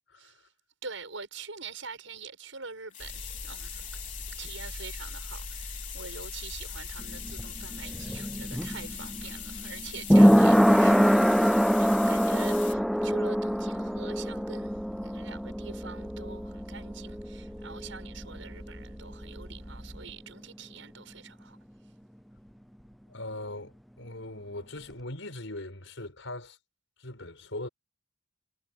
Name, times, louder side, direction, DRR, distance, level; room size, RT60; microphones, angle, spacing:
voice 1, 0.1-0.4 23.1-26.6 27.0-27.7, left 1 dB, 70° left, 5.5 m, -40 dB
voice 2, 0.8-21.6, right 5 dB, 70° right, 7.0 m, -45 dB
sound 1, 2.9-12.7, left 10 dB, 40° left, 4.4 m, -42 dB
sound 2, 3.0-20.1, equal, 30° right, 4.3 m, -45 dB
sound 3, 7.0-18.5 18.8-18.9, equal, ahead, 0.3 m, -24 dB
head